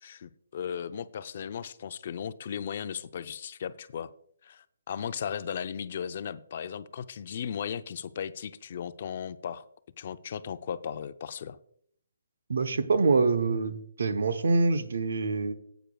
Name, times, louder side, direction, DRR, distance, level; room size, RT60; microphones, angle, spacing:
voice 1, 0.0-4.1 4.4-9.7 10.0-11.6, left 8 dB, 45° left, 13 dB, 0.5 m, -36 dB
voice 2, 12.5-15.5, right 3 dB, 70° right, 10 dB, 0.9 m, -25 dB
14.5 x 9.0 x 2.3 m, 0.65 s
hypercardioid pair, 160°, 0 cm